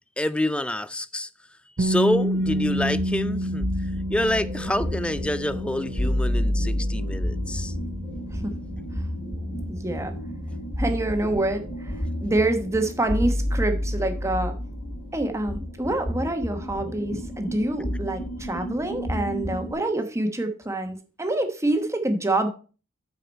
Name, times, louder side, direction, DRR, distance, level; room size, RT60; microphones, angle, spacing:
voice 1, 0.2-1.3 1.8-3.7 4.1-7.7, left 1 dB, 5° left, 0.3 m, -27 dB
sound 1, 1.8-13.6, equal, 45° right, 0.7 m, -31 dB
sound 2, 2.4-19.7, left 1 dB, 70° left, 4.3 m, -30 dB
voice 2, 9.7-10.1 10.8-14.6 15.1-22.5, right 2 dB, 15° right, 1.0 m, -26 dB
7.7 x 4.8 x 5.3 m
head